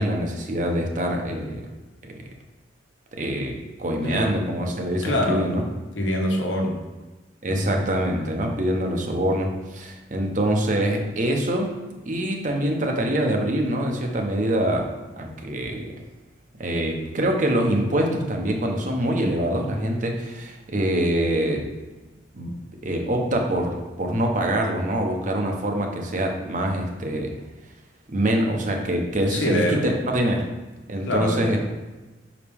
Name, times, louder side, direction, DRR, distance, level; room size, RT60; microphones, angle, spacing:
voice 1, 0.0-1.7 2.0-2.1 3.2-5.6 7.4-11.7 12.0-14.9 15.2-15.9 16.6-21.7 22.3-22.5 22.8-27.3 28.1-30.5 30.9-31.6, right 1 dB, 40° right, 2 dB, 0.9 m, -24 dB
voice 2, 4.0-4.6 5.0-5.4 5.9-6.8 7.5-7.8 29.1-29.9 31.1-31.6, left 1 dB, 75° left, 1 dB, 1.1 m, -25 dB
5.7 x 4.9 x 3.5 m, 1.2 s
head